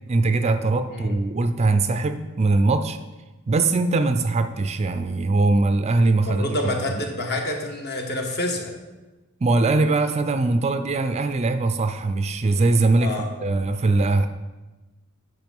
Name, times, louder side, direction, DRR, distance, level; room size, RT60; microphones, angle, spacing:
voice 1, 0.1-3.0 3.5-6.6 6.9-7.0 9.4-13.1 13.4-14.3, right 3 dB, 30° right, 9 dB, 0.4 m, -21 dB
voice 2, 6.2-8.8 13.0-13.3, left 1 dB, 50° left, 3 dB, 1.3 m, -27 dB
9.1 x 5.5 x 5.3 m, 1.2 s
head